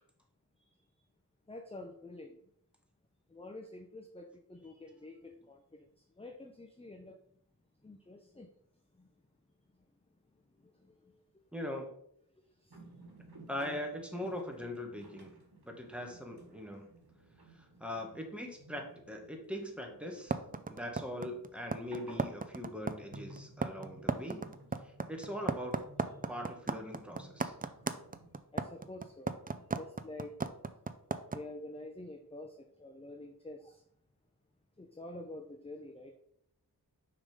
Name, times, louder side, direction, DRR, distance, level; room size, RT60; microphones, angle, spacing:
voice 1, 1.5-2.5 3.3-7.2 7.8-9.1 9.7-11.4 12.3-12.9 26.2-26.3 27.6-30.4 31.3-33.9 34.8-36.2, left 2 dB, 15° left, 0.6 m, -49 dB
voice 2, 11.5-11.9 13.5-15.3 15.6-16.9 17.5-20.4 20.7-24.6 25.1-25.8 26.3-27.5, left 1 dB, 5° right, 1.6 m, -41 dB
sound 1, 12.7-28.3, right 1 dB, 75° right, 1.6 m, -56 dB
sound 2, 20.3-31.4, right 4 dB, 25° right, 0.4 m, -34 dB
6.3 x 3.9 x 5.1 m
wide cardioid pair, 50°, 38 cm